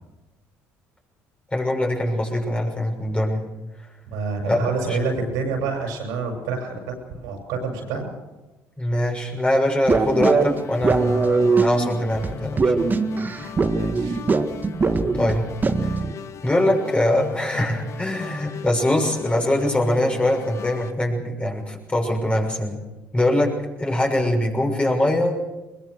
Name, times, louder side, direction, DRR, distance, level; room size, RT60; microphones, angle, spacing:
voice 1, 1.5-3.5 4.5-5.0 8.8-12.7 15.2-15.5 16.4-22.8 23.1-25.4, left 1 dB, 20° left, 1 dB, 6.4 m, -22 dB
voice 2, 4.1-8.1 13.7-14.2, right 4 dB, 85° right, 3 dB, 6.7 m, -27 dB
sound 1, 9.8-20.9, left 7 dB, 55° left, 1.2 m, -38 dB
sound 2, 9.9-16.1, right 4 dB, 30° right, 1.7 m, -22 dB
21.5 x 21.5 x 6.6 m, 1.1 s
supercardioid pair, 75°, 6 cm